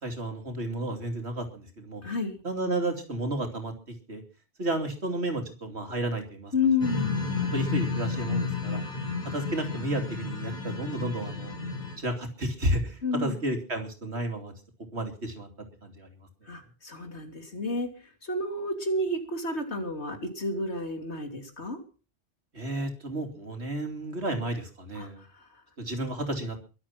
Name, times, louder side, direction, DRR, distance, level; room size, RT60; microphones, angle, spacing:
voice 1, 0.0-2.0 2.4-3.7 4.1-4.2 4.6-6.5 7.5-8.8 9.2-11.6 12.0-14.5 14.9-15.5 15.8-16.1 22.5-25.2 25.8-26.6, right 1 dB, 65° right, 5 dB, 3.2 m, -32 dB
voice 2, 2.0-2.4 6.5-7.3 13.0-13.3 16.5-17.9 18.2-21.8 24.9-25.1, left 3 dB, 65° left, 6 dB, 3.2 m, -30 dB
sound 1, 6.8-12.0, left 4 dB, 40° left, 4.5 m, -31 dB
22.5 x 8.1 x 5.9 m, 0.36 s
omnidirectional pair, 1.2 m